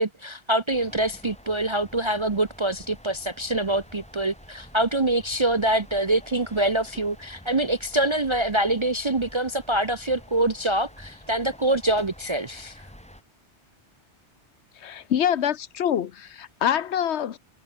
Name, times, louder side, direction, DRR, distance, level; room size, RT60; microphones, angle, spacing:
voice 1, 0.0-12.9, right 1 dB, 25° right, 0.9 m, -25 dB
sound 1, 0.7-13.2, equal, 5° left, 2.7 m, -48 dB
voice 2, 14.8-17.4, left 9 dB, 70° left, 1.1 m, -25 dB
omnidirectional pair, 1.2 m